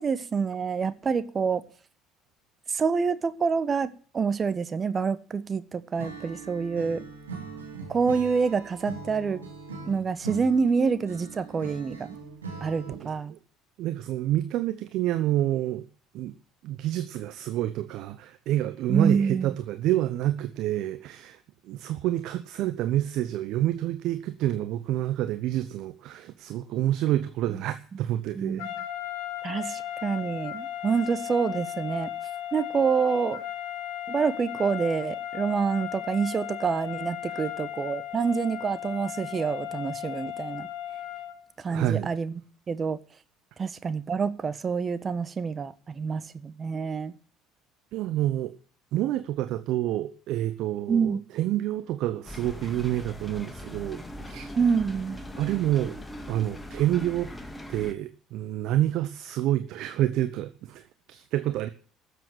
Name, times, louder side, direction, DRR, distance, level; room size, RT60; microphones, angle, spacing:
voice 1, 0.0-1.6 2.7-7.0 7.9-9.4 9.8-12.2 12.6-13.3 18.9-19.5 28.3-28.7 29.4-32.1 32.5-33.4 34.1-40.7 41.6-42.4 42.7-43.0 43.6-47.1 50.9-51.2 54.6-55.2, right 5 dB, 35° right, 1.3 m, -27 dB
Acoustic guitar / Strum, 6.0-13.2, right 5 dB, 90° right, 3.0 m, -41 dB
voice 2, 12.9-13.4 13.8-15.8 16.1-16.3 16.6-28.7 37.3-37.4 41.7-42.1 47.9-48.5 48.9-54.5 55.4-56.0 56.3-57.3 57.7-61.7, right 13 dB, 60° right, 0.9 m, -28 dB
sound 1, 28.6-41.4, left 11 dB, 70° left, 1.8 m, -36 dB
sound 2, 52.2-57.9, left 1 dB, 15° left, 2.2 m, -40 dB
13.0 x 7.7 x 9.1 m
hypercardioid pair, 60°, 0 cm